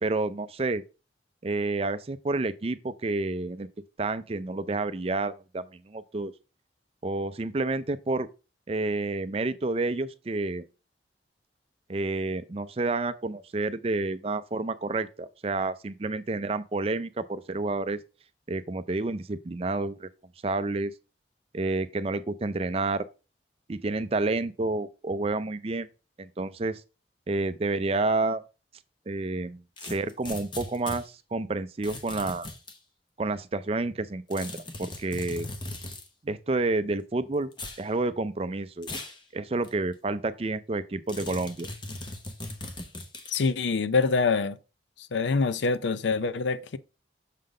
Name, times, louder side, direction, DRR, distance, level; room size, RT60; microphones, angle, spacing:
voice 1, 0.0-0.8 1.4-3.7 4.0-6.3 7.0-8.3 8.7-10.7 11.9-18.0 18.5-20.1 20.4-20.9 21.5-23.0 23.7-25.9 26.2-26.8 27.3-28.4 29.1-32.5 33.2-34.5 34.8-35.5 36.2-37.5 37.8-38.9 39.3-41.7, right 2 dB, 35° right, 0.4 m, -29 dB
sound 1, 29.8-31.0 31.8-32.8 34.3-36.1 37.5-37.8 38.8-39.2 39.6-39.7 41.1-43.5, left 2 dB, 25° left, 0.9 m, -39 dB
voice 2, 43.3-44.6 45.1-46.8, left 4 dB, 90° left, 0.5 m, -25 dB
6.6 x 3.9 x 4.9 m
head